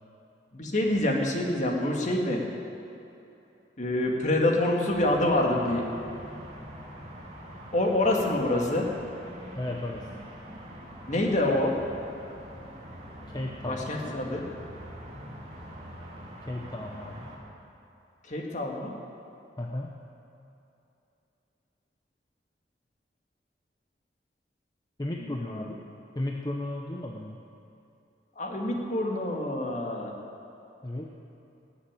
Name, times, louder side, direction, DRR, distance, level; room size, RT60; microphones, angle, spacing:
voice 1, 0.5-2.4 3.8-5.9 7.7-8.9 11.1-11.7 13.7-14.5 18.2-18.9 25.2-25.7 28.4-30.1, left 1 dB, 40° left, 0 dB, 2.0 m, -26 dB
sound 1, 4.9-17.4, equal, 35° right, 2.9 m, -44 dB
voice 2, 9.6-10.1 13.3-13.8 16.5-17.3 19.6-20.0 25.0-25.8 26.2-27.4 30.8-31.1, left 1 dB, 25° left, 0 dB, 0.8 m, -34 dB
20.0 x 7.2 x 9.0 m, 2.8 s
head